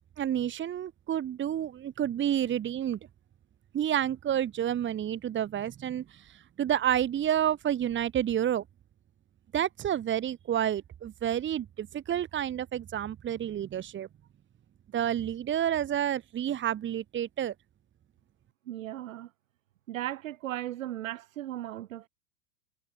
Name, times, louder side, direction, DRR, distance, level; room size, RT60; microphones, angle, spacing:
voice 1, 0.2-3.0 3.7-8.6 9.5-14.1 14.9-17.5, right 10 dB, 30° right, 2.6 m, -29 dB
voice 2, 18.7-19.3 19.9-22.1, right 13 dB, 70° right, 7.8 m, -36 dB
hypercardioid pair, 100°, 41 cm